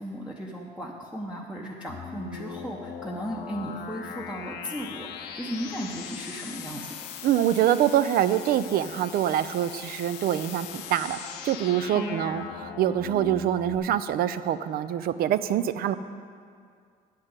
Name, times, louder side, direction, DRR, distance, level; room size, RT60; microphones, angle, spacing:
voice 1, 0.0-6.9 11.9-12.5, equal, 5° right, -2 dB, 0.8 m, -36 dB
sound 1, 1.9-13.8, left 8 dB, 85° left, 0.8 m, -40 dB
voice 2, 7.2-16.0, right 11 dB, 65° right, 13 dB, 0.5 m, -25 dB
8.9 x 5.7 x 8.1 m, 2.2 s
cardioid pair, 110°, 17 cm